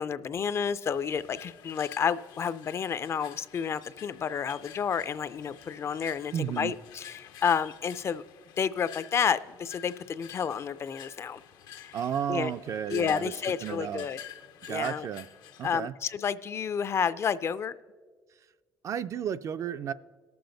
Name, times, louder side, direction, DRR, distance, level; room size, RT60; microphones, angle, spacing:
voice 1, 0.0-8.2 8.6-11.4 11.8-12.0 12.3-12.5 12.9-14.2 14.7-15.1 15.6-17.7, left 7 dB, 40° left, 0.3 m, -30 dB
sound 1, 0.8-15.7, left 10 dB, 85° left, 0.7 m, -49 dB
voice 2, 6.3-6.7 11.9-13.3 13.6-14.1 14.7-15.3 15.6-15.9 18.8-19.9, right 9 dB, 45° right, 0.3 m, -32 dB
18.5 x 7.0 x 3.9 m
cardioid pair, 115°, 7 cm